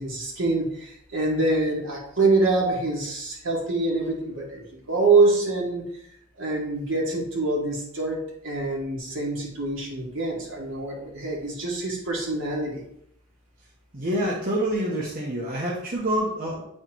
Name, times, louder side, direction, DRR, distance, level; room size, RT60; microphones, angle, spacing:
voice 1, 0.0-5.8 6.4-12.8, right 3 dB, 70° right, -3 dB, 2.2 m, -25 dB
voice 2, 13.9-16.6, right 1 dB, 45° right, -5 dB, 1.1 m, -27 dB
8.5 x 4.3 x 3.1 m, 0.74 s
head